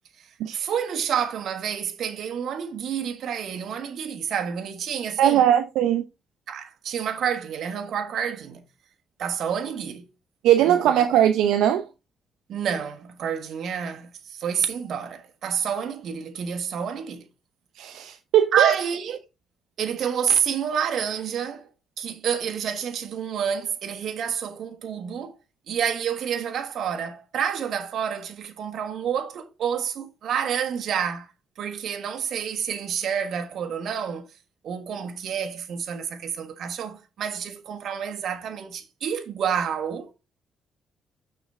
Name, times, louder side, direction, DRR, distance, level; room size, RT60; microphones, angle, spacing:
voice 1, 0.5-5.5 6.5-8.6 9.2-10.1 10.6-11.1 12.5-17.2 18.5-19.2 19.8-21.7 22.0-25.4 25.7-31.3 31.6-34.3 34.6-40.1, right 8 dB, 65° right, 1.4 m, -29 dB
voice 2, 5.2-6.0 10.4-11.9 17.8-18.8, right 11 dB, 90° right, 0.6 m, -19 dB
6.7 x 6.3 x 3.6 m
cardioid pair, 90°, 0 cm